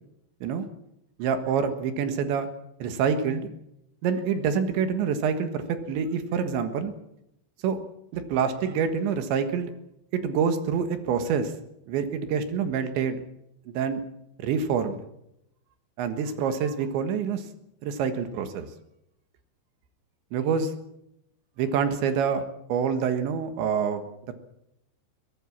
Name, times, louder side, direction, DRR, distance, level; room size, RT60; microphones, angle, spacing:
voice 1, 1.2-2.5 2.8-3.5 4.0-6.9 7.6-7.8 8.1-9.7 10.1-11.5 11.9-13.2 13.8-14.0 14.4-15.0 16.0-17.4 17.8-18.7 20.3-20.7 21.6-22.4 22.7-24.0, right 6 dB, 80° right, 9 dB, 3.9 m, -26 dB
22.5 x 17.5 x 7.4 m, 0.81 s
omnidirectional pair, 5.1 m